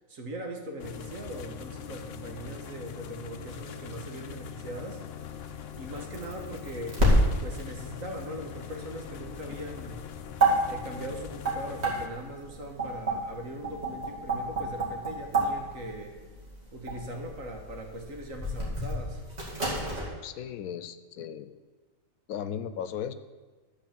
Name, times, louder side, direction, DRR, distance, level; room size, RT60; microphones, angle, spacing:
voice 1, 0.1-5.0 5.8-7.0 7.4-10.0 10.7-16.1 16.7-19.2, right 1 dB, 70° right, 3 dB, 1.7 m, -40 dB
sound 1, 0.8-12.1, left 8 dB, 60° left, 0.7 m, -42 dB
sound 2, 5.1-20.1, right 1 dB, 50° right, 2.7 m, -30 dB
voice 2, 20.2-21.6 22.3-23.1, left 9 dB, 85° left, 12 dB, 1.1 m, -36 dB
11.5 x 4.9 x 7.4 m, 1.3 s
omnidirectional pair, 1.4 m